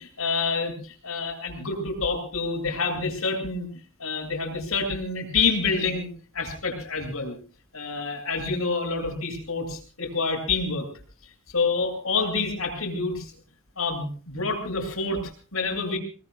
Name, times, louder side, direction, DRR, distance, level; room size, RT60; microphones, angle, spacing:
voice 1, 0.0-3.7 4.0-6.1 6.3-7.4 7.7-10.9 11.5-13.3 13.8-16.0, left 4 dB, 70° left, 3 dB, 7.9 m, -27 dB
28.5 x 21.0 x 2.4 m, 0.40 s
head